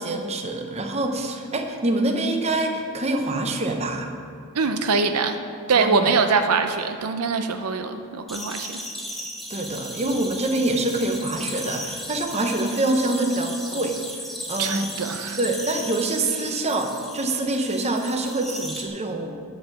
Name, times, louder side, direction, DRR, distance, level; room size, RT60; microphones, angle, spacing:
voice 1, 0.0-4.1 5.7-6.1 9.5-14.0 14.5-14.9 15.4-19.5, right 2 dB, 30° right, 4 dB, 0.8 m, -25 dB
voice 2, 4.5-5.4 5.7-8.8 14.6-15.4, right 4 dB, 85° right, 7 dB, 0.6 m, -23 dB
sound 1, 8.3-18.8, equal, ahead, 1.1 m, -36 dB
11.0 x 4.7 x 7.0 m, 2.3 s
head